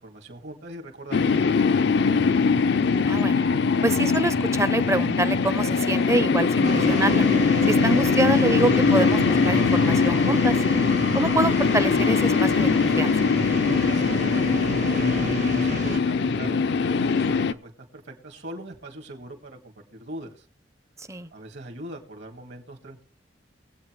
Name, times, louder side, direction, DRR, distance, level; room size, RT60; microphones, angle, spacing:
voice 1, 0.0-2.3 13.6-14.8 15.1-20.5 21.3-23.0, right 1 dB, 70° right, 2.2 m, -41 dB
sound 1, 1.1-17.5, left 5 dB, 70° left, 0.5 m, -21 dB
voice 2, 3.0-3.4 3.8-7.2 7.7-10.6 11.1-13.1 21.1-21.3, right 2 dB, 15° right, 0.6 m, -26 dB
sound 2, 6.6-16.0, right 2 dB, 45° right, 0.8 m, -31 dB
22.0 x 8.2 x 3.1 m
head